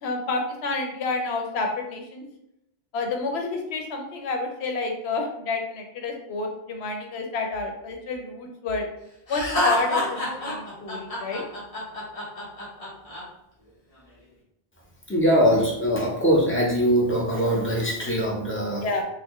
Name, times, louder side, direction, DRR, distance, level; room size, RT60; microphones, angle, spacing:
voice 1, 0.0-2.2 2.9-8.9 9.3-10.0 10.4-11.4 18.8-19.0, left 3 dB, 85° left, 3 dB, 1.0 m, -29 dB
Laughter, 9.3-13.2, left 2 dB, 35° left, 1.1 m, -27 dB
voice 2, 15.1-18.9, equal, 15° left, -3 dB, 0.7 m, -22 dB
4.2 x 2.2 x 3.0 m, 0.79 s
omnidirectional pair, 1.1 m